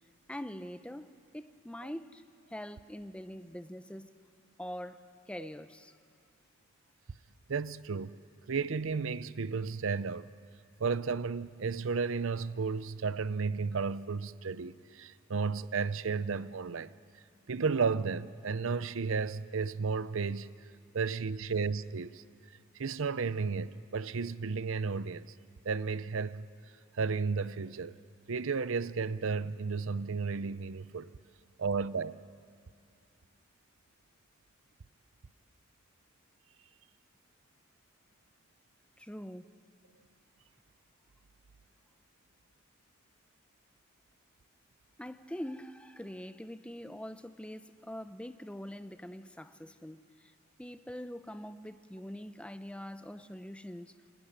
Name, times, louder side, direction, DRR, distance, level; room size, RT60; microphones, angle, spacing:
voice 1, 0.3-2.2 2.5-4.1 4.6-6.0 39.0-39.5 45.0-50.3 50.6-53.9, equal, 5° left, 0.6 m, -44 dB
voice 2, 7.5-8.2 8.5-10.3 10.8-16.9 17.5-20.5 20.9-22.2 22.7-25.3 25.6-26.5 26.9-28.0 28.3-31.1 31.6-32.2, right 5 dB, 65° right, 0.6 m, -33 dB
26.5 x 22.0 x 10.0 m
head